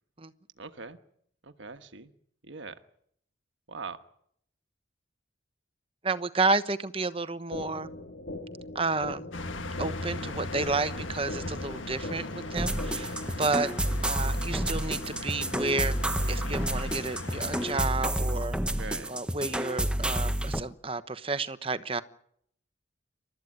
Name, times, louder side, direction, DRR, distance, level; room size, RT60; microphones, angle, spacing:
voice 1, 0.6-1.0 1.4-2.1 2.4-2.8 3.7-4.0 13.5-13.7 18.7-19.1, right 4 dB, 75° right, 1.3 m, -41 dB
voice 2, 6.0-7.9 8.7-9.3 9.8-13.7 14.0-15.9 16.3-18.6 19.1-22.0, right 3 dB, 30° right, 1.0 m, -31 dB
sound 1, 7.5-13.5, left 2 dB, 65° left, 2.4 m, -41 dB
sound 2, 9.3-17.8, left 2 dB, 85° left, 1.7 m, -38 dB
sound 3, 12.6-20.6, right 1 dB, 5° right, 1.0 m, -30 dB
28.0 x 13.5 x 9.6 m
head